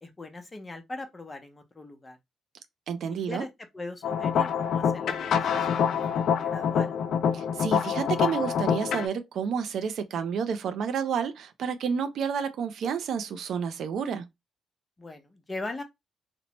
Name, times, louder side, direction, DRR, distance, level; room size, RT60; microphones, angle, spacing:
voice 1, 0.0-2.2 3.3-6.9 15.0-15.8, left 2 dB, 25° left, 0.7 m, -40 dB
voice 2, 2.9-3.4 7.3-14.3, right 7 dB, 70° right, 0.4 m, -30 dB
sound 1, 4.0-9.1, left 7 dB, 70° left, 0.4 m, -26 dB
2.9 x 2.0 x 2.9 m
cardioid pair, 90°, 0 cm